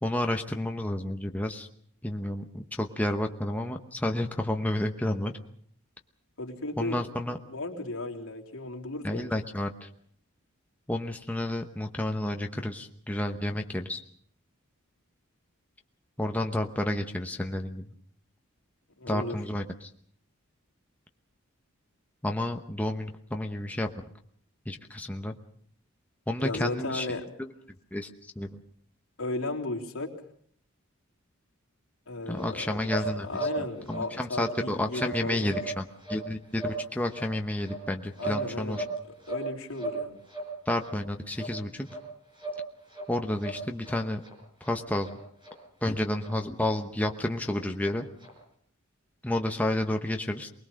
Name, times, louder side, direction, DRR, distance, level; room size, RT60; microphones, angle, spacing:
voice 1, 0.0-1.7 2.0-5.3 6.8-7.4 9.0-9.9 10.9-14.0 16.2-17.9 19.1-19.9 22.2-23.9 24.7-25.3 26.3-27.1 27.4-27.5 27.9-28.1 28.4-28.6 32.3-38.8 40.7-41.9 43.1-44.2 44.6-45.2 45.8-48.1 49.2-50.5, left 1 dB, 5° left, 4 dB, 1.0 m, -31 dB
voice 2, 6.4-7.0 7.5-9.3 19.0-19.4 26.4-27.2 29.2-30.1 32.1-32.9 33.1-35.6 38.2-38.9 39.3-40.2, left 2 dB, 80° left, 0 dB, 3.4 m, -35 dB
sound 1, 32.4-32.5 32.8-33.1 33.3-33.6 33.8-34.0 34.4-34.6 34.9-35.2 35.4-35.7 36.0-36.2 36.5-36.8 37.1-37.3 37.6-38.4 38.7-39.5 39.7-40.0 40.3-40.5 40.8-40.9 41.3-41.5 41.8-42.0 42.4-42.6 42.9-43.1 43.4-43.9 44.2-44.3 44.6-44.7 45.0-45.1 45.4-45.5 45.8-45.9 46.2-46.3 46.6-46.7 47.0-47.1 47.4-47.5 47.8-47.9 48.2-48.3, right 2 dB, 20° right, 5.5 m, -36 dB
24.0 x 20.5 x 6.4 m, 0.62 s
head